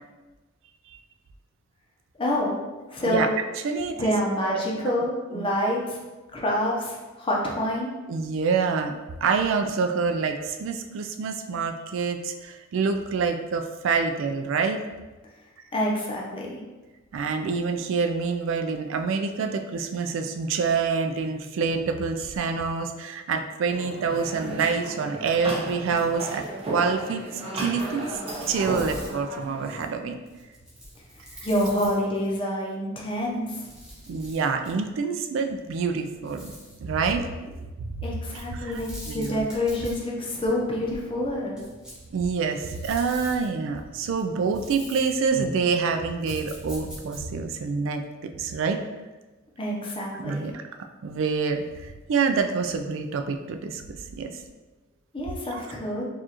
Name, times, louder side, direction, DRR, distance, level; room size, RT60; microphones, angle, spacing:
voice 1, 2.2-2.6 2.9-3.3 4.0-6.0 6.3-7.9 15.7-16.6 31.4-33.7 38.0-41.6 49.6-50.5 55.1-56.0, left 1 dB, 25° left, -3 dB, 0.7 m, -27 dB
voice 2, 4.5-4.9 5.3-5.5 8.1-8.9 9.2-14.8 17.1-28.2 28.5-30.2 34.1-36.5 36.8-37.3 37.8-37.9 38.5-38.7 39.1-39.5 42.1-48.0 48.4-48.8 50.2-50.5 51.0-53.8 54.2-54.3 55.5-55.6, right 5 dB, 70° right, 5 dB, 0.3 m, -27 dB
sound 1, 23.7-29.8, right 1 dB, 30° right, 0.8 m, -34 dB
sound 2, 27.9-32.4 33.2-34.9 36.0-36.8 38.3-47.4, equal, 5° right, 0.9 m, -44 dB
4.7 x 2.4 x 2.9 m, 1.2 s
head